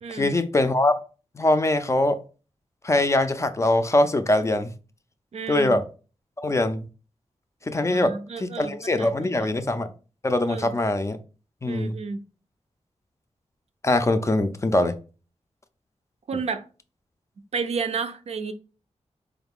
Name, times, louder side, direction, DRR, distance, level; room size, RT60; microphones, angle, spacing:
voice 1, 0.1-0.9 1.4-2.2 2.8-4.7 5.5-5.8 6.4-6.8 7.7-9.9 10.2-11.2 11.6-12.0 13.8-14.9, left 2 dB, 25° left, 0.4 m, -22 dB
voice 2, 5.3-5.8 7.9-9.5 10.4-10.7 11.6-12.3 16.3-16.6 17.5-18.5, right 5 dB, 60° right, 0.4 m, -31 dB
4.1 x 2.4 x 3.5 m
wide cardioid pair, 125°, 12 cm